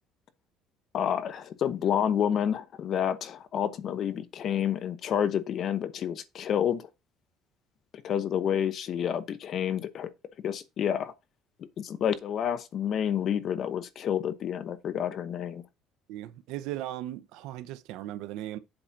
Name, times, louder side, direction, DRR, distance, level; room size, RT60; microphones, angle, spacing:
voice 1, 0.9-6.9 8.0-10.1 10.4-11.1 11.8-15.6, left 9 dB, 45° left, 0.9 m, -29 dB
voice 2, 16.1-18.6, right 14 dB, 80° right, 0.8 m, -37 dB
7.8 x 4.3 x 5.9 m
cardioid pair, 150°, 0 cm